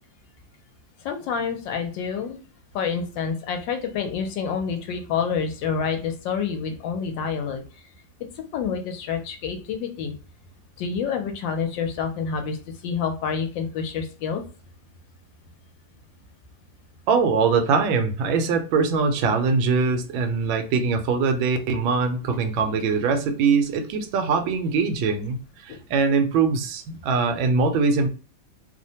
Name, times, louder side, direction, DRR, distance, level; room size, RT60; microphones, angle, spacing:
voice 1, 1.0-2.4 2.7-7.6 8.4-10.1 10.8-12.6 12.8-14.4 25.7-25.8, left 6 dB, 75° left, 1.2 m, -28 dB
voice 2, 17.1-25.4 25.6-28.1, right 5 dB, 80° right, 1.3 m, -22 dB
3.2 x 2.1 x 2.7 m
omnidirectional pair, 2.1 m